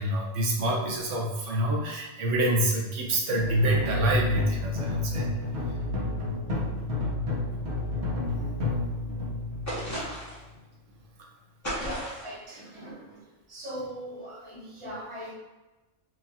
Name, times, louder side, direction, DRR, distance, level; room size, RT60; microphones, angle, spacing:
voice 1, 0.0-5.3, right 1 dB, 85° right, -2 dB, 1.1 m, -26 dB
sound 1, 3.4-10.6, left 2 dB, 60° right, 1.2 m, -31 dB
sound 2, 9.7-10.5 11.6-12.4, equal, 15° left, 1.0 m, -34 dB
voice 2, 11.8-15.3, equal, 25° right, -7 dB, 1.0 m, -40 dB
4.7 x 2.5 x 2.7 m, 1.1 s
omnidirectional pair, 1.3 m